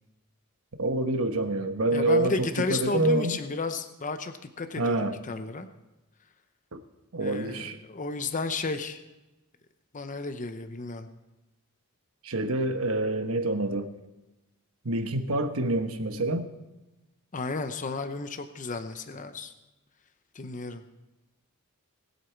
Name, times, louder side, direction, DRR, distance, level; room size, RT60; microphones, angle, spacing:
voice 1, 0.8-3.4 4.8-5.2 6.7-6.8 7.1-7.7 12.2-13.9 14.8-16.5, right 2 dB, 70° right, 7 dB, 1.2 m, -27 dB
voice 2, 1.9-5.7 7.2-9.0 9.9-11.1 17.3-19.5 20.3-20.8, left 3 dB, 35° left, 8 dB, 0.8 m, -33 dB
20.5 x 8.3 x 4.6 m, 1.0 s
head